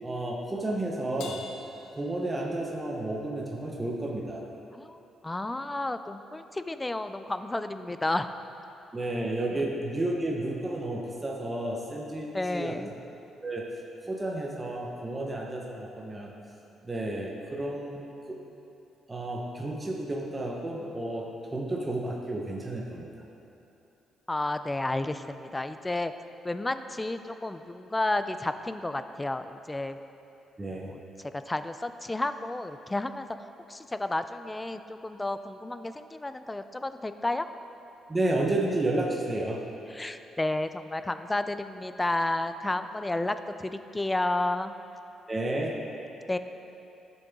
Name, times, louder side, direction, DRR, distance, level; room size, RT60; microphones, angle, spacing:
voice 1, 0.0-1.4 2.0-4.4 8.9-12.8 13.4-13.7 14.0-16.3 16.8-18.0 18.3-18.4 19.1-23.1 30.6-30.9 38.1-39.6 45.3-45.8, right 1 dB, 20° right, -1 dB, 1.0 m, -31 dB
Crash cymbal, 1.2-2.9, left 5 dB, 90° left, 0.7 m, -45 dB
voice 2, 4.7-8.3 12.3-12.9 24.3-26.1 26.4-30.0 30.7-33.3 33.7-37.5 39.9-44.7 46.3-46.4, left 2 dB, 15° left, 10 dB, 0.4 m, -31 dB
11.5 x 6.8 x 3.7 m, 2.9 s
cardioid pair, 90°, 0 cm